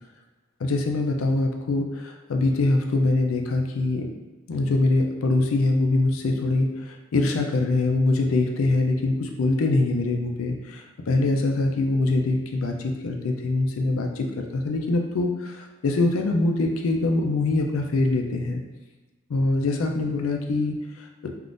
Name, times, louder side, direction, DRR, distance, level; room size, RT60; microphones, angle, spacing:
voice 1, 0.6-4.1 4.5-14.3 14.5-18.6 19.3-21.3, left 2 dB, 75° left, 3 dB, 0.4 m, -23 dB
3.5 x 2.5 x 2.5 m, 1.2 s
head